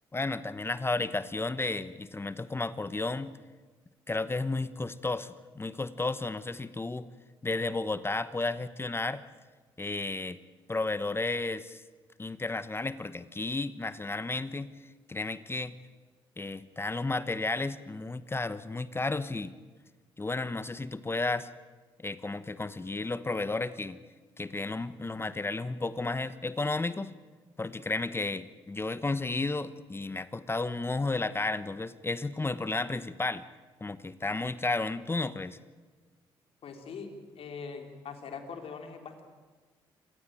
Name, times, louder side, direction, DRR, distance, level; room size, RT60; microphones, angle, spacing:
voice 1, 0.1-3.3 4.1-7.0 7.4-9.2 9.8-10.4 10.7-11.8 12.2-14.7 15.1-15.7 16.4-19.5 20.2-21.5 22.0-24.0 24.4-27.1 27.6-33.4 33.8-35.6, left 3 dB, 20° left, 14 dB, 1.1 m, -32 dB
voice 2, 36.6-39.2, left 5 dB, 60° left, 5 dB, 3.9 m, -42 dB
27.0 x 16.5 x 9.3 m, 1.4 s
supercardioid pair, 55°, 11 cm